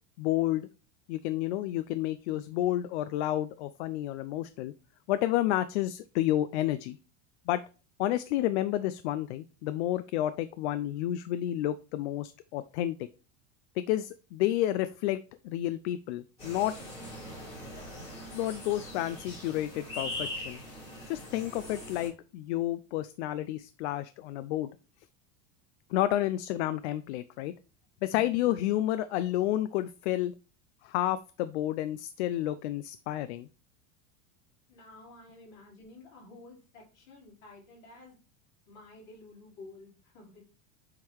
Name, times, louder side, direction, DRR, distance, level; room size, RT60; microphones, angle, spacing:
voice 1, 0.2-0.7 1.1-4.7 5.1-7.0 7.5-7.6 8.0-13.0 13.8-15.2 15.4-16.8 18.3-20.6 21.1-24.7 25.9-27.5 28.0-30.3 30.8-33.5, left 14 dB, 65° left, 13 dB, 0.5 m, -30 dB
sound 1, 16.4-22.1, left 1 dB, 15° left, 3.5 m, -41 dB
voice 2, 34.7-38.2 38.7-40.5, left 2 dB, 45° left, -3 dB, 3.7 m, -51 dB
7.5 x 3.8 x 4.6 m, 0.35 s
supercardioid pair, 180°, 37 cm